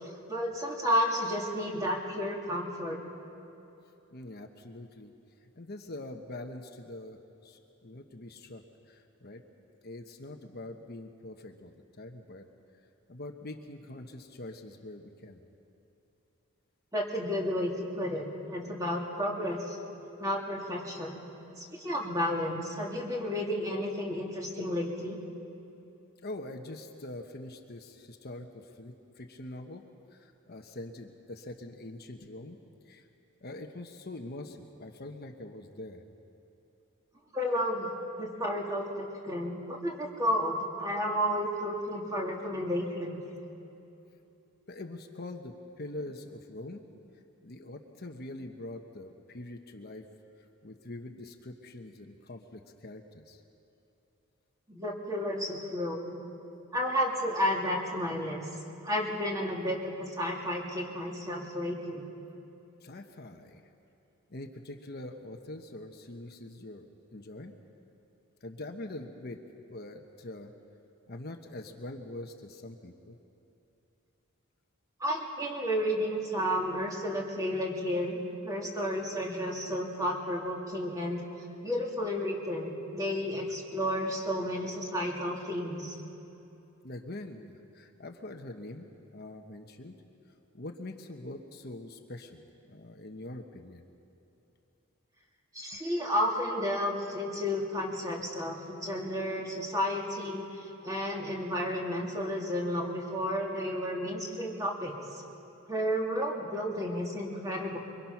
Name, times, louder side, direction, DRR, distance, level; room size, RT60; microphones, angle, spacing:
voice 1, 0.3-3.0 16.9-19.8 20.2-21.2 21.5-25.2 37.3-37.9 38.2-43.2 54.7-56.2 56.7-58.4 58.8-62.0 75.0-78.2 78.4-81.2 81.6-85.9 95.5-105.2 105.7-107.8, equal, 15° right, -1 dB, 2.5 m, -32 dB
voice 2, 4.1-5.1 5.5-9.4 9.8-12.5 13.1-15.4 26.2-29.8 30.1-32.6 32.8-33.1 33.4-36.0 44.7-46.8 47.4-50.1 50.4-53.4 62.8-63.6 64.3-67.5 68.4-69.4 69.7-70.5 71.1-73.2 86.8-90.0 90.5-92.4 92.7-93.8, left 2 dB, 45° left, 4 dB, 1.1 m, -44 dB
25.5 x 23.5 x 5.9 m, 2.9 s
head